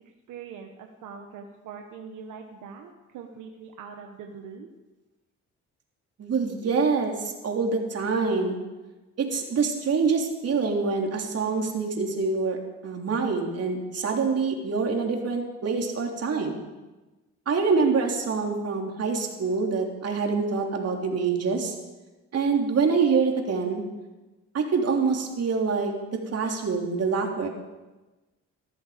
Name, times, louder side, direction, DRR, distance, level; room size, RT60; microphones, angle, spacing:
voice 1, 0.3-4.7, right 6 dB, 85° right, 3 dB, 1.4 m, -42 dB
voice 2, 6.2-8.6 9.2-16.6 17.5-21.7 22.3-23.8 24.5-27.5, right 4 dB, 55° right, 2 dB, 3.3 m, -26 dB
19.5 x 13.0 x 5.1 m, 1.1 s
cardioid pair, 90°, 30 cm